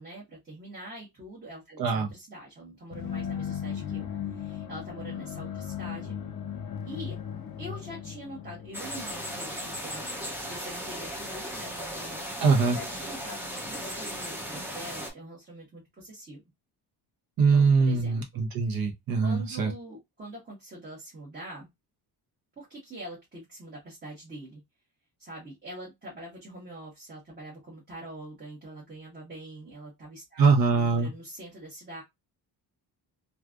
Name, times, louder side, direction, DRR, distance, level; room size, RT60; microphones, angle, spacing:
voice 1, 0.0-6.1 6.8-7.2 7.6-12.3 12.7-16.4 17.5-18.4 19.2-21.7 22.6-24.6 25.2-32.0, right 1 dB, 25° right, 1.2 m, -44 dB
voice 2, 1.8-2.1 12.4-12.8 17.4-19.7 30.4-31.1, right 4 dB, 60° right, 1.0 m, -23 dB
sound 1, 2.9-10.7, left 8 dB, 60° left, 0.7 m, -37 dB
sound 2, 8.7-15.1, equal, 5° right, 0.6 m, -37 dB
3.2 x 2.5 x 2.3 m
cardioid pair, 165°, 40 cm